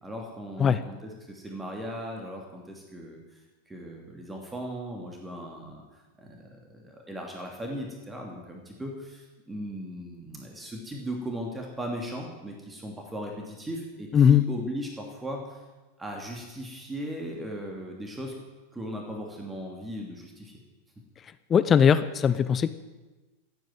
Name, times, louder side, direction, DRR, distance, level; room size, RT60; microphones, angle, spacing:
voice 1, 0.0-3.2 3.7-5.8 6.2-15.6 16.0-18.4 18.7-20.6, equal, 10° right, 0 dB, 2.8 m, -37 dB
voice 2, 14.1-14.4 21.5-22.7, left 8 dB, 25° left, 13 dB, 0.6 m, -19 dB
15.0 x 9.2 x 9.1 m, 1.2 s
figure-of-eight pair, 90°, 0 cm